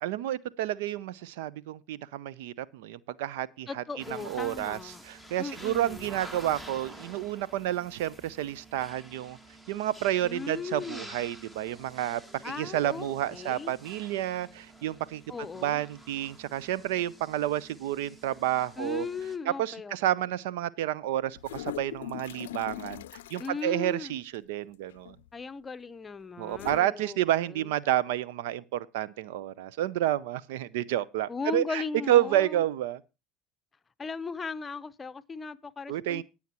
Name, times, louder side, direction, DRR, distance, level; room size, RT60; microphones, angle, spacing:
voice 1, 0.0-3.8 4.2-9.4 9.7-15.2 15.6-19.1 19.6-23.0 23.3-25.2 26.4-33.0 35.9-36.2, right 13 dB, 75° right, 0.6 m, -30 dB
voice 2, 3.7-5.0 5.4-6.2 10.2-11.2 12.4-13.7 15.3-15.8 18.8-20.2 23.4-24.1 25.3-27.7 31.3-32.6 34.0-36.2, left 4 dB, 25° left, 0.7 m, -37 dB
sound 1, 4.0-19.4, right 1 dB, 15° right, 1.7 m, -49 dB
sound 2, 21.3-23.6 24.9-25.3 26.5-26.8, left 13 dB, 80° left, 0.5 m, -40 dB
20.5 x 7.2 x 2.9 m
hypercardioid pair, 75°, 0 cm